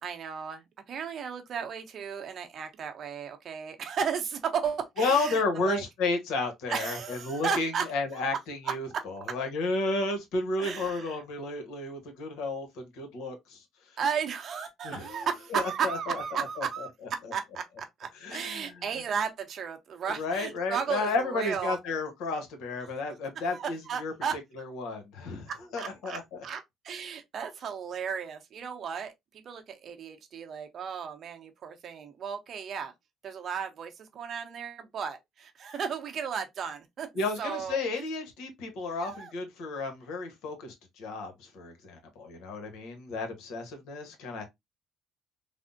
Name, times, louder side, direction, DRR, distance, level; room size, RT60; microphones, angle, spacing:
voice 1, 0.0-5.8 6.7-7.9 8.1-8.3 8.6-9.0 10.6-11.2 14.0-21.8 23.5-24.4 25.5-32.9 33.2-37.1 37.4-37.8 39.0-39.3, right 7 dB, 55° right, 0.7 m, -34 dB
voice 2, 5.0-13.6 14.8-15.2 15.5-16.2 16.6-16.7 18.2-18.7 20.1-24.1 24.6-26.4 37.2-44.4, left 3 dB, 80° left, 1.0 m, -32 dB
3.4 x 2.0 x 2.5 m
cardioid pair, 90°, 0 cm